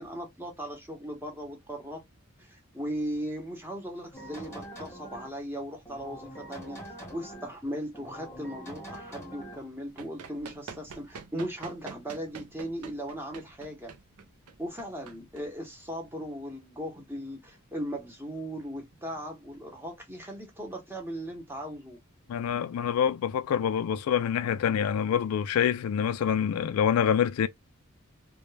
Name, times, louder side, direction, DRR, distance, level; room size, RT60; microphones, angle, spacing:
voice 1, 0.0-2.0 2.4-13.9 14.6-22.0, equal, 10° right, 0.7 m, -38 dB
sound 1, 4.1-5.4 5.9-7.5 7.9-9.7, right 1 dB, 10° left, 1.0 m, -44 dB
Run, 9.7-16.0, right 5 dB, 90° right, 0.5 m, -47 dB
voice 2, 22.3-27.5, left 8 dB, 75° left, 0.3 m, -26 dB
2.2 x 2.1 x 3.1 m
head